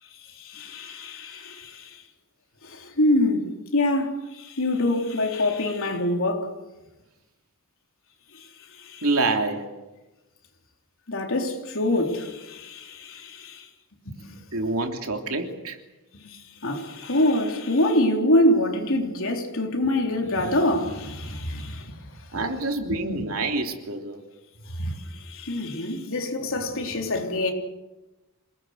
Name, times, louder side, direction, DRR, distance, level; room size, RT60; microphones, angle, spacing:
voice 1, 0.2-2.0 2.6-6.5 8.3-8.5 8.8-9.1 11.1-13.7 14.1-14.4 16.1-21.9 22.9-23.2 24.8-27.5, left 1 dB, 65° left, 3.8 m, -25 dB
voice 2, 9.0-9.7 14.5-15.8 22.3-24.2, right 2 dB, 70° right, 3.2 m, -26 dB
27.5 x 20.0 x 8.1 m
head